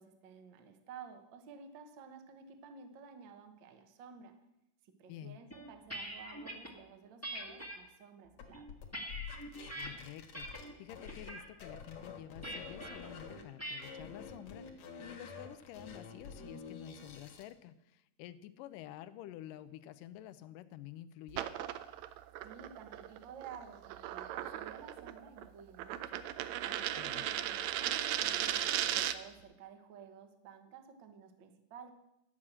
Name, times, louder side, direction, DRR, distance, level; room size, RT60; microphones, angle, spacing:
voice 1, 0.0-4.3 4.8-8.7 22.4-26.2 26.6-31.9, right 6 dB, 65° right, 7 dB, 1.1 m, -53 dB
sound 1, 5.5-6.7 7.2-7.8 8.4-9.9 10.3-10.7 11.1-11.5 12.4-13.0 13.6-14.0, right 1 dB, 10° left, 0.7 m, -43 dB
sound 2, 8.4-11.3 11.6-13.4 13.8-17.5, left 6 dB, 60° left, 2.4 m, -48 dB
voice 2, 9.8-21.5 27.0-27.2, left 12 dB, 85° left, 13 dB, 2.3 m, -50 dB
sound 3, 21.3-29.4, right 12 dB, 80° right, 1.6 m, -37 dB
13.0 x 6.2 x 8.6 m, 0.88 s
omnidirectional pair, 3.8 m